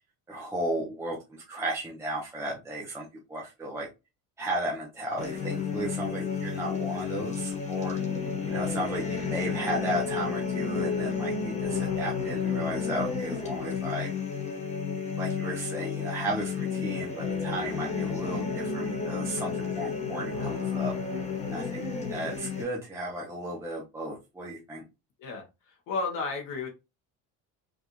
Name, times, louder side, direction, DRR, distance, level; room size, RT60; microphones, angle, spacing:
voice 1, 0.3-3.9 4.4-14.1 15.2-20.9 21.5-21.8 22.1-24.8, right 1 dB, 10° right, -3 dB, 0.7 m, -34 dB
sound 1, 5.2-22.6, left 6 dB, 20° left, 1.3 m, -31 dB
voice 2, 25.2-26.7, left 4 dB, 70° left, 2 dB, 1.1 m, -33 dB
5.1 x 2.4 x 3.0 m, 0.26 s
cardioid pair, 150°, 33 cm